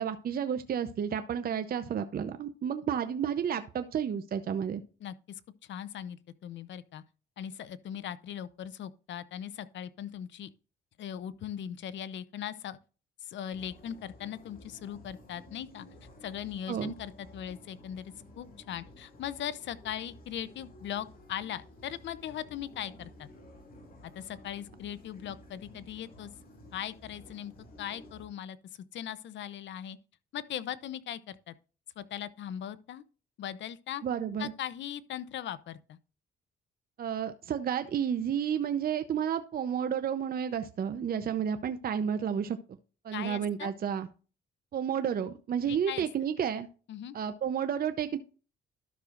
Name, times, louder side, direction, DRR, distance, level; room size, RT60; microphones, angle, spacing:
voice 1, 0.0-4.8 16.7-16.9 34.0-34.5 37.0-42.6 43.0-44.1 44.7-46.7 47.1-48.2, right 8 dB, 50° right, 0.7 m, -31 dB
voice 2, 5.6-7.0 7.4-10.5 11.0-12.8 13.2-15.9 16.2-23.3 24.0-26.3 26.7-27.5 27.8-28.6 28.9-30.0 30.3-31.5 32.0-33.0 33.4-34.0 34.4-36.0 43.1-43.7 45.7-46.1 46.9-47.1, left 10 dB, 65° left, 0.6 m, -39 dB
sound 1, 13.5-28.3, left 1 dB, 45° left, 2.5 m, -53 dB
12.5 x 6.2 x 2.5 m
cardioid pair, 90°, 20 cm